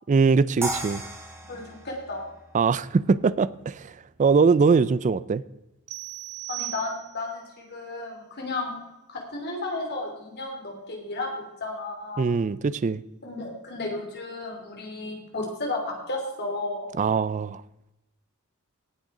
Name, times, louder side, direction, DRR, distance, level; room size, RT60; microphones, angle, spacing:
voice 1, 0.1-1.0 2.5-3.9 4.2-5.4 12.2-13.0 17.0-17.6, right 5 dB, 35° right, 0.3 m, -22 dB
sound 1, 0.6-3.7, right 2 dB, 10° right, 2.1 m, -36 dB
voice 2, 1.5-2.3 6.5-8.8 9.1-12.3 13.2-16.9, left 2 dB, 50° left, 3.1 m, -33 dB
sound 2, 5.9-7.4, right 19 dB, 70° right, 0.8 m, -37 dB
17.5 x 6.5 x 4.9 m
head